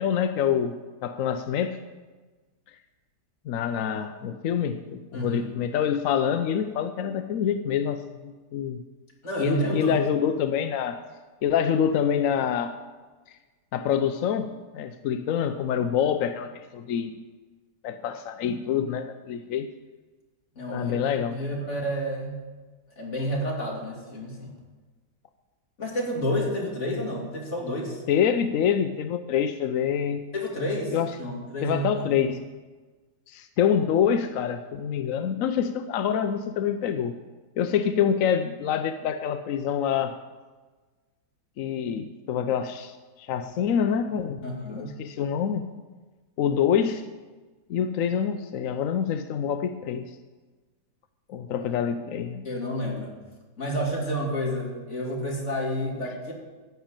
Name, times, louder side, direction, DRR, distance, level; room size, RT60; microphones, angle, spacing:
voice 1, 0.0-1.8 3.5-8.8 9.4-11.0 11.4-12.7 13.7-17.1 17.8-19.7 20.7-21.4 28.1-30.2 30.9-31.1 31.6-32.4 33.3-37.2 37.6-40.1 41.6-45.7 46.4-47.0 47.7-50.2 51.3-52.5, left 8 dB, 65° left, 8 dB, 0.8 m, -26 dB
voice 2, 5.1-5.5 9.2-10.0 20.6-21.0 21.3-22.4 23.0-24.5 25.8-28.0 30.3-31.9 32.1-32.2 44.4-44.9 52.4-53.1 53.6-56.3, equal, 40° left, -2 dB, 2.9 m, -30 dB
14.0 x 5.7 x 8.8 m, 1.3 s
omnidirectional pair, 1.9 m